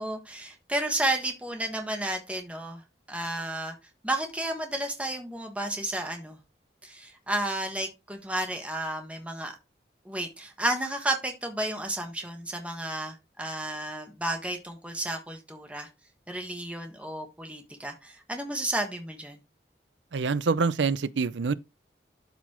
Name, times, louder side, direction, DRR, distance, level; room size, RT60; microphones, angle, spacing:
voice 1, 0.0-2.8 3.1-3.7 4.0-6.4 6.8-9.5 10.0-15.9 16.3-19.4, right 1 dB, 5° right, 1.3 m, -32 dB
voice 2, 20.1-21.5, right 4 dB, 85° right, 0.5 m, -26 dB
12.5 x 4.1 x 3.0 m
head